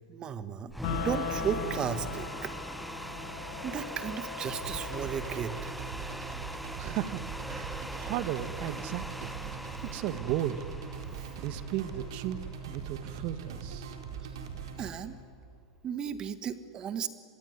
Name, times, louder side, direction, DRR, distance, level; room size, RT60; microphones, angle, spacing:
voice 1, 0.1-2.5 3.6-5.8 11.1-11.3 14.2-14.4 14.8-15.2 15.8-17.1, right 8 dB, 30° right, 13 dB, 1.4 m, -35 dB
sound 1, 0.7-12.8, equal, ahead, 1.0 m, -41 dB
sound 2, 0.8-10.8, left 5 dB, 70° left, 5.7 m, -42 dB
sound 3, 4.6-14.9, right 6 dB, 75° right, 4.3 m, -41 dB
voice 2, 6.8-9.3 9.8-10.7 11.4-12.4 12.7-13.9, right 12 dB, 50° right, 13 dB, 1.6 m, -35 dB
25.5 x 22.5 x 9.6 m, 2.6 s
hypercardioid pair, 115°, 3 cm